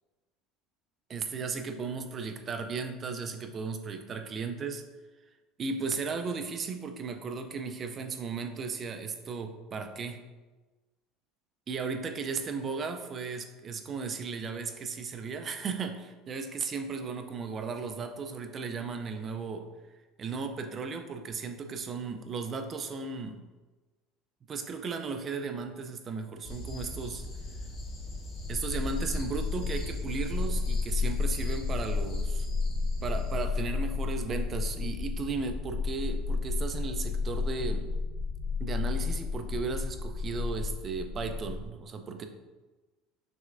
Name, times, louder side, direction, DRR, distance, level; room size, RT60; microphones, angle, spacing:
voice 1, 1.1-4.8 5.6-10.2 11.7-19.7 20.2-23.4 24.5-27.3 28.5-32.5 33.0-37.9 38.6-42.3, right 4 dB, 25° right, 6 dB, 0.4 m, -35 dB
sound 1, 26.4-33.4, left 2 dB, 40° left, 0.8 m, -41 dB
sound 2, 28.4-41.7, left 4 dB, 90° left, 0.6 m, -32 dB
6.0 x 3.2 x 2.5 m, 1.2 s
cardioid pair, 160°, 0 cm